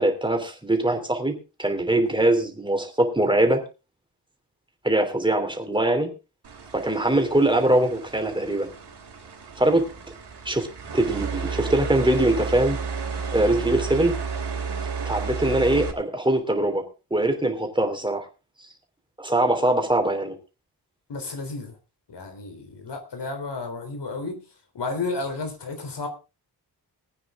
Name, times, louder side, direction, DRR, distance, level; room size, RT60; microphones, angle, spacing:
voice 1, 0.0-1.3 1.6-3.6 4.8-6.1 6.7-8.7 9.6-9.8 10.4-10.7 10.9-12.8 13.3-14.2 15.1-16.8 17.1-18.2 19.2-20.4, right 1 dB, 10° right, 5 dB, 3.2 m, -22 dB
sound 1, 6.4-15.9, right 5 dB, 80° right, 3.4 m, -32 dB
voice 2, 21.1-21.8 22.1-24.4 24.7-26.1, left 3 dB, 85° left, 7 dB, 3.6 m, -32 dB
20.0 x 9.3 x 3.7 m, 0.31 s
wide cardioid pair, 110°, 40 cm